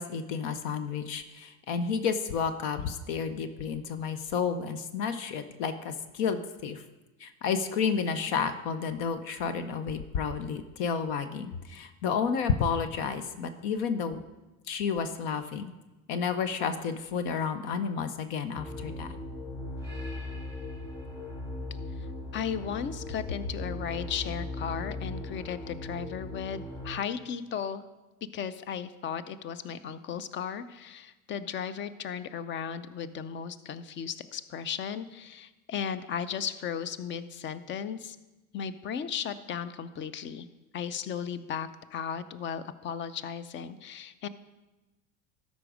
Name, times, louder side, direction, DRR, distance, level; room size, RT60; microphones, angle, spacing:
voice 1, 0.0-6.8 7.2-14.2 14.7-15.7 16.1-19.2, left 6 dB, 60° left, 11 dB, 0.8 m, -31 dB
sound 1, 18.5-27.0, left 2 dB, 10° left, 2.0 m, -38 dB
voice 2, 22.0-27.8 28.3-38.2 38.5-40.5 40.7-44.3, left 7 dB, 30° left, 14 dB, 0.5 m, -36 dB
13.0 x 5.2 x 5.0 m, 1.1 s
hypercardioid pair, 95°, 43 cm